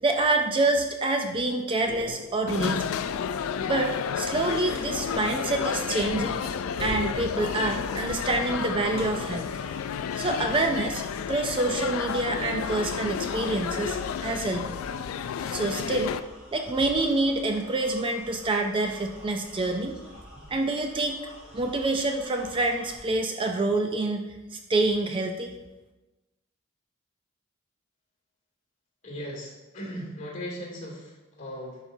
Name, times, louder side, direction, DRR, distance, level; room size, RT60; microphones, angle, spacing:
voice 1, 0.0-2.9 3.7-6.4 6.8-9.5 10.1-11.0 11.3-14.8 15.4-16.2 16.5-20.0 20.5-21.3 21.5-25.5, right 2 dB, 25° right, 4 dB, 0.4 m, -27 dB
sound 1, 1.8-2.5 2.9-3.3 3.6-5.5 6.0-10.7 11.0-12.0 12.5-13.3, right 1 dB, 50° right, 1.7 m, -44 dB
sound 2, 2.5-16.2, left 7 dB, 85° left, 0.3 m, -31 dB
sound 3, 9.3-23.0, equal, 5° right, 2.6 m, -49 dB
voice 2, 29.0-31.8, equal, 40° left, -4 dB, 2.5 m, -38 dB
10.5 x 5.6 x 2.7 m, 1.1 s
head